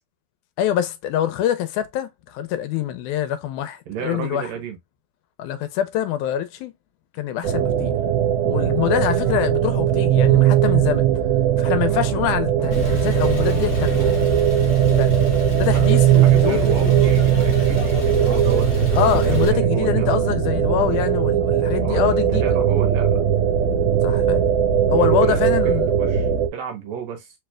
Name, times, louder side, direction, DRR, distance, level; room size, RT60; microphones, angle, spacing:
voice 1, 0.6-4.5 5.4-6.7 7.1-7.9 8.5-11.1 11.6-14.1 14.8-15.2 15.6-17.0 19.0-22.5 24.0-24.5 24.9-26.0, left 11 dB, 85° left, 2.1 m, -25 dB
voice 2, 3.9-4.8 11.6-12.0 15.7-20.1 21.8-23.2 25.0-27.3, right 8 dB, 70° right, 2.1 m, -33 dB
sound 1, 7.4-26.5, right 10 dB, 85° right, 2.1 m, -19 dB
sound 2, 9.2-9.5 12.0-14.4, right 5 dB, 45° right, 2.0 m, -42 dB
Male speech man speaking / Car / Idling, 12.7-19.5, left 2 dB, 40° left, 1.5 m, -27 dB
4.7 x 3.2 x 2.3 m
omnidirectional pair, 3.5 m